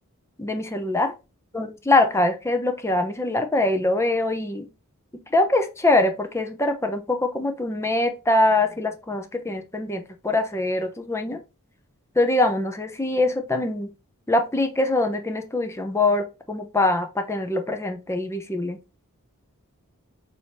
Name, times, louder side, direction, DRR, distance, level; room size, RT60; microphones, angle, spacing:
voice 1, 0.4-1.1 1.5-4.7 5.1-11.4 12.2-13.9 14.3-18.8, left 2 dB, 10° left, 0.7 m, -23 dB
6.1 x 2.7 x 3.1 m
head